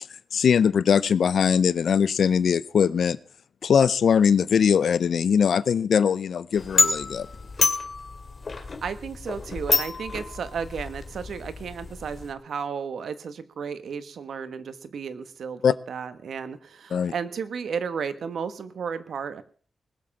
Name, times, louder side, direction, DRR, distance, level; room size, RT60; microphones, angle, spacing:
voice 1, 0.3-3.2 3.6-7.3 15.6-15.7 16.9-17.1, left 7 dB, 85° left, 18 dB, 0.6 m, -21 dB
sound 1, 6.5-12.3, left 4 dB, 45° left, 2.4 m, -28 dB
voice 2, 8.5-19.4, right 6 dB, 85° right, 11 dB, 1.4 m, -33 dB
20.0 x 7.7 x 7.2 m, 0.43 s
wide cardioid pair, 105°, 0 cm